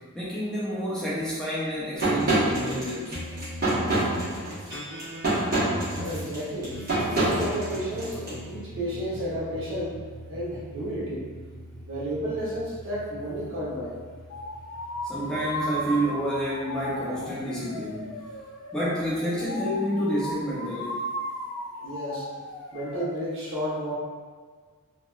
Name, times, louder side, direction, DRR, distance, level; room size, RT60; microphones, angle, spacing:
voice 1, 0.1-3.2 5.3-5.5 15.0-18.2 18.7-21.1, equal, 5° left, -8 dB, 0.5 m, -29 dB
sound 1, 2.0-8.3, right 1 dB, 45° right, 1.1 m, -26 dB
sound 2, 3.1-17.8, equal, 15° right, 1.2 m, -42 dB
voice 2, 5.9-6.8 7.0-10.0 10.3-11.3 11.8-13.9 21.8-22.2 22.7-23.9, equal, 65° right, -8 dB, 1.1 m, -32 dB
sound 3, 14.3-23.2, equal, 75° left, 0.4 m, -36 dB
3.0 x 2.8 x 2.3 m, 1.6 s
head